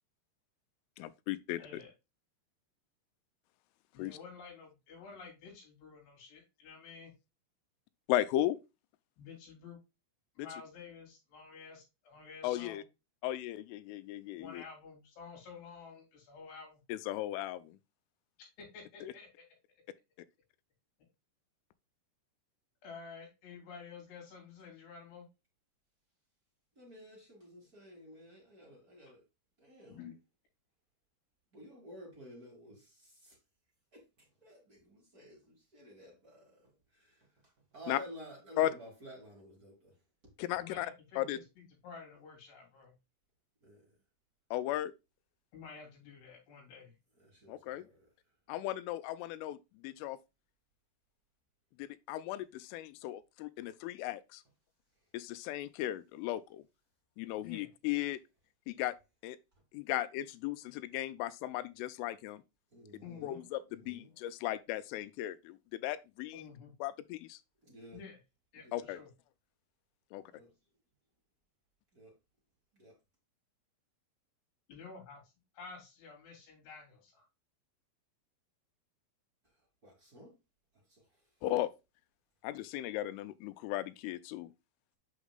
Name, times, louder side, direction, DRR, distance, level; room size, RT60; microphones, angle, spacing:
voice 1, 1.0-1.6 4.0-4.2 8.1-8.6 10.4-10.5 12.4-12.8 13.2-14.6 16.9-17.8 19.0-19.1 37.9-38.0 38.6-38.7 40.4-41.4 44.5-44.9 47.5-47.9 48.5-50.2 51.8-54.4 55.1-56.6 57.2-58.2 58.7-58.9 59.2-59.4 59.7-62.4 63.2-66.4 66.8-67.4 68.7-69.0 70.1-70.2 81.4-81.7 82.4-84.5, left 14 dB, 85° left, 3.0 m, -36 dB
voice 2, 1.6-1.9 3.9-7.1 9.2-9.8 10.4-12.8 14.4-16.8 18.6-19.5 22.8-25.3 29.9-30.1 40.6-41.4 41.8-42.9 45.5-47.0 57.4-57.7 63.0-63.4 66.3-66.7 67.9-68.2 68.5-69.1 74.7-75.2 75.5-77.3, left 5 dB, 55° left, 4.7 m, -50 dB
voice 3, 26.7-29.2 29.6-30.0 31.5-33.4 33.9-37.3 37.7-39.9 43.6-43.9 47.2-48.1 62.7-63.5 63.8-64.1 67.6-68.0 68.6-68.8 70.3-70.5 71.9-72.1 72.7-72.9 79.8-80.3 80.9-81.0, equal, 45° right, 1.1 m, -53 dB
8.1 x 6.0 x 2.3 m
omnidirectional pair, 5.8 m